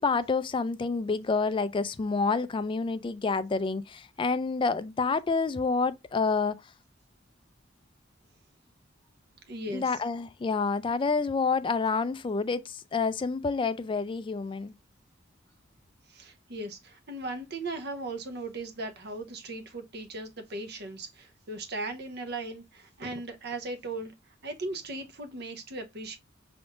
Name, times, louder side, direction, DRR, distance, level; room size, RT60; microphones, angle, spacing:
voice 1, 0.0-6.6 9.7-14.7, left 4 dB, 25° left, 0.3 m, -28 dB
voice 2, 9.5-10.0 16.1-24.1 24.4-26.2, right 2 dB, 60° right, 0.8 m, -38 dB
5.9 x 3.6 x 2.4 m
head